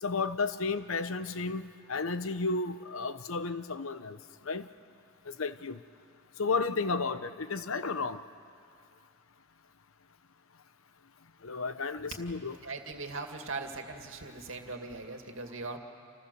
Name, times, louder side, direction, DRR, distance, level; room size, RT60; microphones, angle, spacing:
voice 1, 0.0-4.2 4.5-4.7 5.3-5.8 6.4-8.2 11.4-12.6, left 4 dB, 80° left, 12 dB, 0.9 m, -32 dB
voice 2, 12.6-15.8, right 3 dB, 70° right, 4 dB, 2.3 m, -40 dB
29.5 x 27.5 x 7.0 m, 2.4 s
head